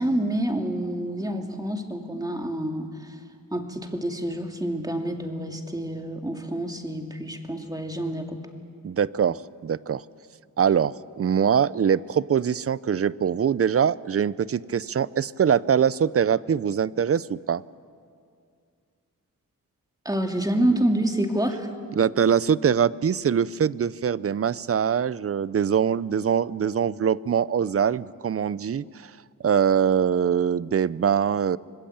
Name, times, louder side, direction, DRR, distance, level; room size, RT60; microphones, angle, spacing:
voice 1, 0.0-3.1 3.5-8.4 20.0-21.7, right 1 dB, 10° right, 3 dB, 2.6 m, -27 dB
voice 2, 8.8-10.0 10.6-17.6 22.0-29.1 29.4-31.6, right 8 dB, 40° right, 19 dB, 0.5 m, -23 dB
25.5 x 20.5 x 8.7 m, 2.3 s
wide cardioid pair, 90°, 34 cm